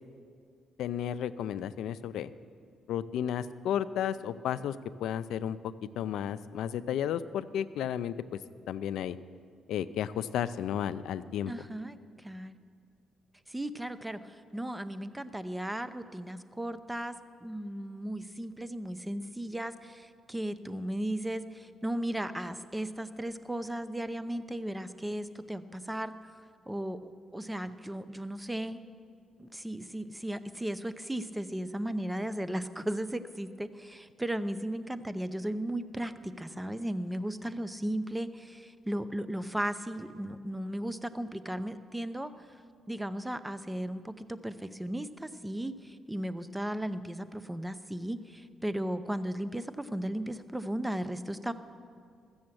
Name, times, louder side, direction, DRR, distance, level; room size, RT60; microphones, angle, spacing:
voice 1, 0.8-2.3 2.9-8.1 8.7-9.2 9.7-11.5, left 9 dB, 80° left, 13 dB, 0.4 m, -33 dB
voice 2, 11.5-12.6 13.5-17.2 17.4-26.1 26.7-28.8 29.4-42.3 42.9-51.5, right 1 dB, 10° right, 12 dB, 0.6 m, -36 dB
14.0 x 7.1 x 7.7 m, 2.2 s
cardioid pair, 90°, 0 cm